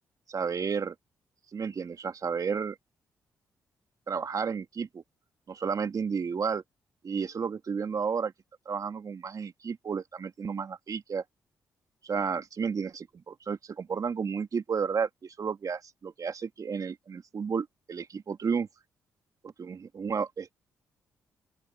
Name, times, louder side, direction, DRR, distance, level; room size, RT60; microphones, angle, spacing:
voice 1, 0.3-0.9 1.5-2.8 4.1-5.0 5.5-6.6 7.0-8.3 8.7-11.2 12.0-18.7 19.4-20.5, right 6 dB, 50° right, 2.6 m, -32 dB
open air
hypercardioid pair, 40°, 8 cm